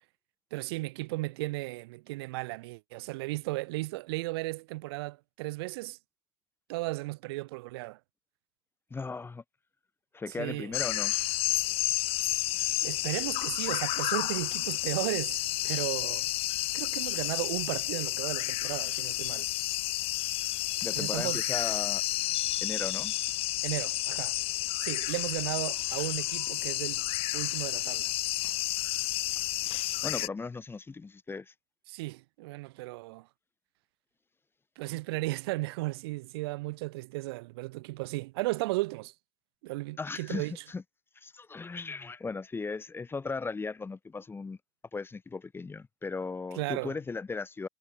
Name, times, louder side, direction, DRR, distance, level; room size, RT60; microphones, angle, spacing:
voice 1, 0.5-6.0 6.7-8.0 10.4-10.7 12.8-16.3 16.7-19.5 20.9-21.4 23.6-24.4 24.8-27.0 27.3-28.1 31.9-33.3 34.8-39.1 39.6-40.6 46.5-47.0, right 22 dB, 70° right, 0.7 m, -35 dB
voice 2, 8.9-9.4 10.1-11.1 20.8-22.0 22.6-23.1 29.3-29.4 30.0-31.5 40.0-40.8 41.1-44.6 44.9-47.7, left 4 dB, 15° left, 1.5 m, -37 dB
sound 1, 10.7-30.3, left 18 dB, 45° left, 0.4 m, -31 dB
hypercardioid pair, 90°, 14 cm